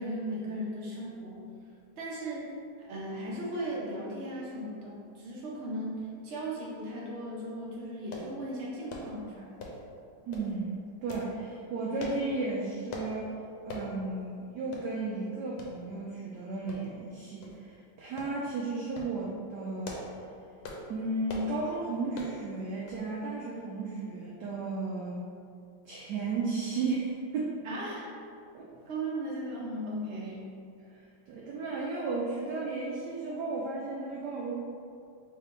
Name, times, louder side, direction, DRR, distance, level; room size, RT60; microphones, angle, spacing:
voice 1, 0.0-1.4 2.0-2.5 2.9-9.5 27.6-28.0 28.9-30.4, right 1 dB, 50° right, -6 dB, 0.8 m, -37 dB
sound 1, 8.1-8.3 8.9-9.1 9.6-9.9 10.3-10.5 11.1-11.3 12.0-12.2 12.9-13.1 13.7-13.9 14.3-14.4 14.7-14.9 15.6-15.7 16.7-17.1 17.4-17.6 18.2-18.3 18.8-19.1 19.6-20.2 20.6-20.9 21.3-21.5 22.1-22.4 22.9-23.1 23.3-23.4, left 2 dB, 85° left, 1.5 m, -41 dB
voice 2, 10.3-10.7 11.0-13.3 13.6-20.0 20.9-25.2 25.9-27.6 28.5-28.7 31.3-34.5, right 3 dB, 80° right, -4 dB, 0.9 m, -34 dB
3.6 x 3.4 x 3.7 m, 2.5 s
omnidirectional pair, 2.3 m